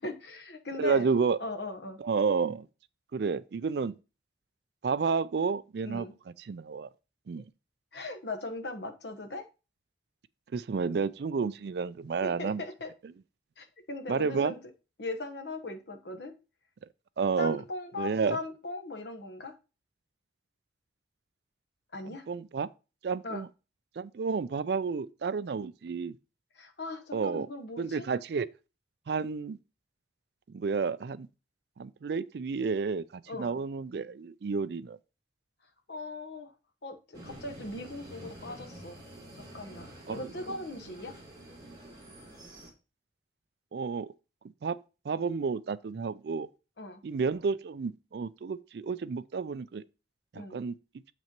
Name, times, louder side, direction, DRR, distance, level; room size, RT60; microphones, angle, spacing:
voice 1, 0.0-1.1 1.4-2.0 5.8-6.1 7.9-9.5 12.2-12.9 13.6-14.6 15.0-16.3 17.4-19.6 21.9-22.2 23.2-23.4 26.5-28.1 33.3-33.6 35.9-36.5 36.8-39.0 39.4-41.2 46.8-47.0 50.3-50.6, left 2 dB, 65° left, 1.0 m, -39 dB
voice 2, 0.8-1.4 2.0-2.7 3.1-4.0 4.8-6.1 6.4-6.9 7.3-7.4 10.5-12.6 14.1-14.5 17.2-17.6 18.0-18.4 22.3-22.7 23.0-23.5 24.0-26.1 27.1-27.5 27.8-28.5 29.1-29.6 30.5-31.3 31.8-35.0 40.1-40.3 43.7-44.1 44.6-44.8 45.1-46.5 47.0-49.8 50.3-50.7, right 5 dB, 60° right, 0.4 m, -30 dB
sound 1, 37.1-42.7, right 1 dB, 20° right, 2.4 m, -48 dB
7.5 x 6.0 x 3.0 m
head